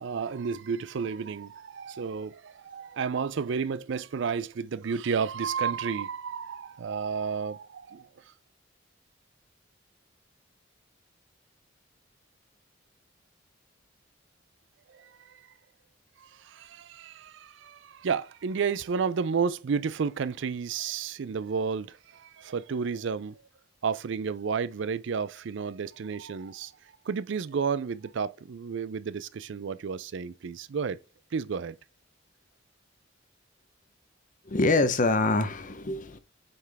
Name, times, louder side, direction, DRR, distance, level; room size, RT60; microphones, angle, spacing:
voice 1, 0.0-8.1 14.9-15.1 16.2-23.4 23.8-26.7 27.1-31.0 31.3-31.8, right 6 dB, 65° right, 0.4 m, -31 dB
voice 2, 34.5-36.2, left 2 dB, 45° left, 0.8 m, -25 dB
7.9 x 5.7 x 3.5 m
head